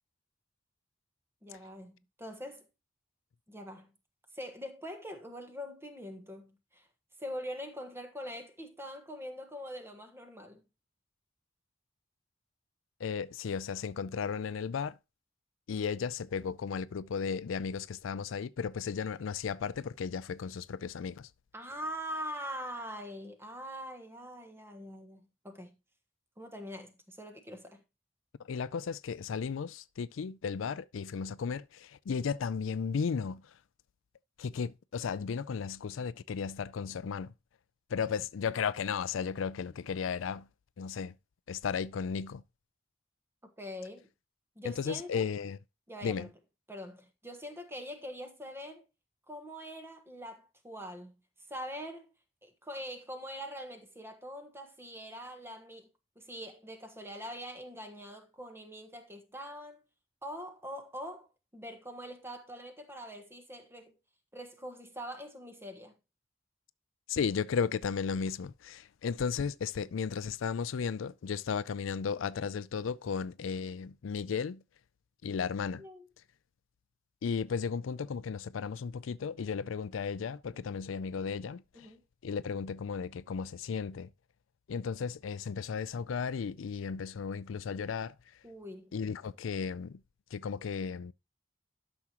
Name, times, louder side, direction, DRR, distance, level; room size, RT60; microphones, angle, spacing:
voice 1, 1.4-2.7 3.5-3.9 4.3-6.9 7.2-10.6 21.5-25.8 26.4-27.8 43.4-44.1 44.5-45.2 45.9-46.3 46.7-48.9 49.3-51.1 51.5-52.1 52.4-55.9 56.1-59.8 60.2-61.3 61.5-63.9 64.3-65.9 75.8-76.1 81.7-82.0 88.4-88.9, equal, 15° right, 1.4 m, -43 dB
voice 2, 13.0-15.0 15.7-21.3 28.5-33.4 34.4-37.3 37.9-40.5 40.8-41.1 41.5-42.4 44.6-45.6 46.0-46.3 67.1-74.6 75.2-75.8 77.2-81.9 82.2-84.1 84.7-88.1 88.9-90.0 90.3-91.1, left 6 dB, 90° left, 0.4 m, -35 dB
12.0 x 6.2 x 2.9 m
head